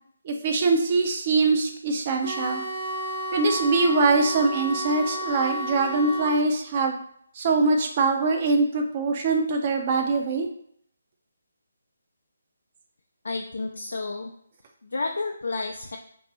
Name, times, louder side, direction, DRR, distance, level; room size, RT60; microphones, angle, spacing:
voice 1, 0.2-2.6 3.3-7.0 7.4-10.5, right 3 dB, 35° right, 4 dB, 0.6 m, -23 dB
sound 1, 2.2-6.4, equal, 70° right, 1.1 m, -32 dB
voice 2, 13.2-14.3 14.8-16.0, left 3 dB, 70° left, 2 dB, 0.4 m, -31 dB
2.6 x 2.5 x 4.1 m, 0.66 s
figure-of-eight pair, 150°, 0 cm